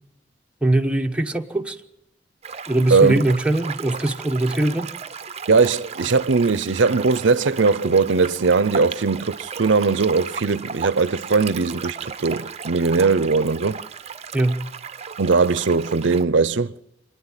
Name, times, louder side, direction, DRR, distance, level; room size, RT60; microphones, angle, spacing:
voice 1, 0.6-1.8 2.7-4.9 14.3-14.6, right 1 dB, 5° right, 1.1 m, -21 dB
sound 1, 2.4-16.2, right 6 dB, 35° right, 0.8 m, -35 dB
voice 2, 2.9-3.2 5.5-13.8 15.2-16.7, right 4 dB, 80° right, 0.7 m, -19 dB
28.5 x 10.5 x 9.0 m
head